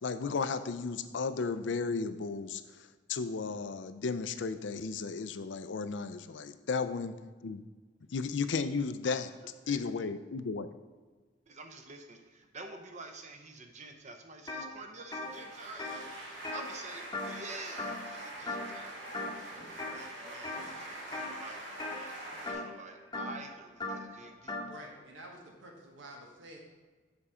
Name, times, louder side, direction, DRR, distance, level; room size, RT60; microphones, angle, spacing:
voice 1, 0.0-2.6 3.1-7.2 7.4-7.6 8.1-9.3 9.7-10.7, left 4 dB, 70° left, 12 dB, 0.5 m, -34 dB
voice 2, 11.5-19.1 19.7-24.6, right 3 dB, 40° right, 5 dB, 0.8 m, -48 dB
sound 1, 14.5-14.7 15.0-17.5 17.8-18.2 18.5-18.8 19.1-20.0 20.4-20.7 21.1-24.7, left 2 dB, 20° left, 0.9 m, -39 dB
sound 2, 15.1-22.5, right 1 dB, 75° right, 2.1 m, -44 dB
voice 3, 24.6-26.6, right 1 dB, 90° right, 0 dB, 1.4 m, -49 dB
7.1 x 5.6 x 4.9 m, 1.3 s
head